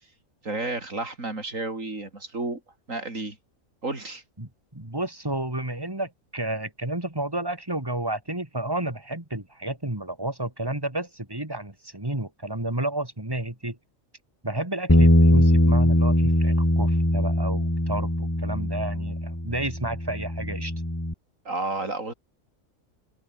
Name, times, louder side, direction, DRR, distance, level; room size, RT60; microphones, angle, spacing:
voice 1, 0.4-2.6 2.9-3.4 3.8-4.2 21.4-22.1, right 2 dB, 70° right, 5.1 m, -31 dB
voice 2, 4.4-13.8 14.4-20.7, right 1 dB, 15° right, 3.4 m, -31 dB
Bass guitar, 14.9-21.1, equal, 10° left, 4.9 m, -21 dB
open air
omnidirectional pair, 1.4 m